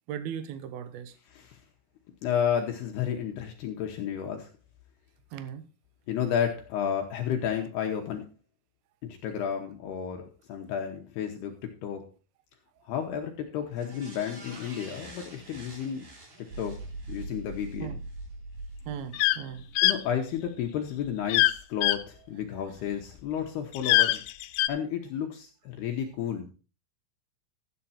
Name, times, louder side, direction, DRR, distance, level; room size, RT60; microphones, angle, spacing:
voice 1, 0.1-1.1 5.3-5.7 17.8-18.0 18.9-19.7, right 9 dB, 75° right, 2.2 m, -37 dB
voice 2, 1.3-1.6 2.2-4.5 6.1-8.2 9.0-11.5 11.8-12.0 12.9-16.0 16.6-16.7 17.1-18.0 19.8-24.2 24.7-26.5, left 8 dB, 70° left, 2.6 m, -32 dB
sound 1, 13.7-18.3 18.6-18.7, right 2 dB, 40° right, 4.0 m, -49 dB
sound 2, 16.5-20.7, right 2 dB, 60° right, 2.2 m, -41 dB
sound 3, 19.1-19.4 19.8-20.0 21.3-21.5 21.8-22.0 23.7-24.7, left 17 dB, 90° left, 3.4 m, -22 dB
13.5 x 8.8 x 4.2 m
omnidirectional pair, 5.9 m